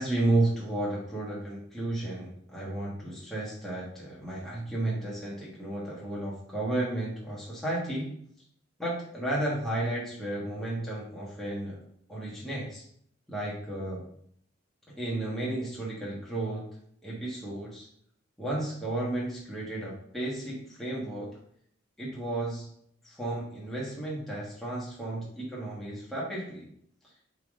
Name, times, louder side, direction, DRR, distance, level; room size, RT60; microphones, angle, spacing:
voice 1, 0.0-8.1 8.8-11.8 12.1-12.8 13.3-14.1 15.0-16.7 17.0-17.9 18.4-21.3 22.0-22.7 23.0-26.7, right 1 dB, ahead, -7 dB, 1.6 m, -33 dB
8.6 x 4.1 x 3.8 m, 0.66 s
head